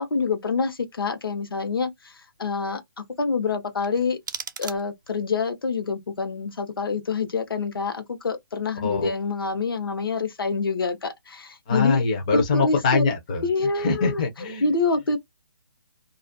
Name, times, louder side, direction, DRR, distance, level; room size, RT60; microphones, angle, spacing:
voice 1, 0.0-4.2 4.6-12.0 12.3-13.1 13.4-14.2 14.6-15.2, left 4 dB, 75° left, 0.8 m, -26 dB
sound 1, 3.8-5.3, right 6 dB, 55° right, 0.4 m, -37 dB
voice 2, 11.7-13.5 13.8-14.7, left 4 dB, 20° left, 0.4 m, -23 dB
2.3 x 2.2 x 2.5 m
hypercardioid pair, 170°, 12 cm